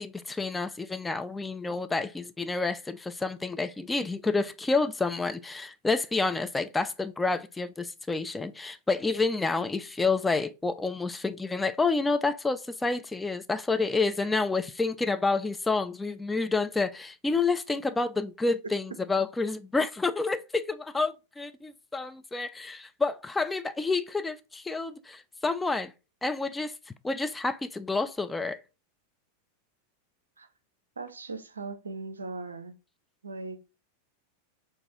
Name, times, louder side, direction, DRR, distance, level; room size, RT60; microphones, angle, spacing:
voice 1, 0.0-25.9 26.2-26.7 27.0-28.6, left 3 dB, 10° left, 0.3 m, -29 dB
voice 2, 31.0-32.7 33.2-33.6, right 3 dB, 75° right, 0.5 m, -38 dB
4.6 x 2.5 x 3.8 m
figure-of-eight pair, 90°, 0 cm